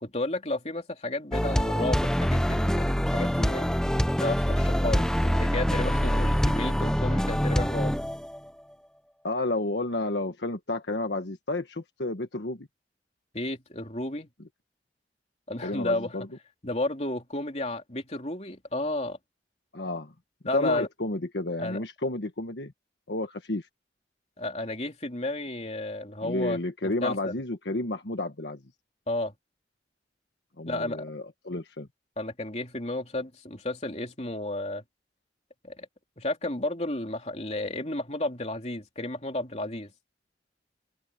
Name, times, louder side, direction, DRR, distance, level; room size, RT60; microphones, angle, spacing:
voice 1, 0.0-3.9 4.2-7.9 13.3-14.3 15.5-16.2 16.6-19.2 20.4-20.9 21.6-21.8 24.4-27.4 29.1-29.3 30.6-31.0 32.2-34.8 35.6-35.9 36.2-39.9, left 2 dB, 35° left, 3.3 m, -32 dB
sound 1, 1.3-8.5, equal, 5° left, 0.6 m, -25 dB
voice 2, 9.2-12.7 15.6-16.3 19.7-20.1 20.5-22.7 23.1-23.7 26.2-28.6 30.6-31.9, left 2 dB, 75° left, 1.5 m, -31 dB
open air
head